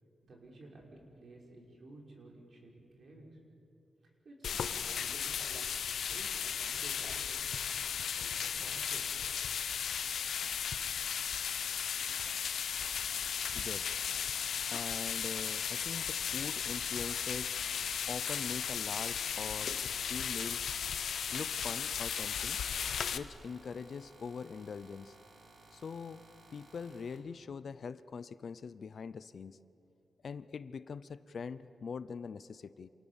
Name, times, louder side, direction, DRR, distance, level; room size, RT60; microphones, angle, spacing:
voice 1, 0.2-3.4 4.2-5.6 6.1-9.1 9.5-9.6, right 2 dB, 45° right, 0 dB, 5.4 m, -54 dB
sound 1, 4.4-23.2, left 7 dB, 75° left, 1.0 m, -35 dB
sound 2, 12.9-27.2, right 2 dB, 70° right, 4.3 m, -59 dB
voice 2, 13.5-14.0 14.7-17.6 18.0-20.7 21.3-22.6 23.1-25.2 25.7-26.2 26.5-29.6 30.2-32.9, left 5 dB, 50° left, 15 dB, 0.6 m, -43 dB
28.5 x 27.5 x 7.2 m, 2.6 s
wide cardioid pair, 175°, 0 cm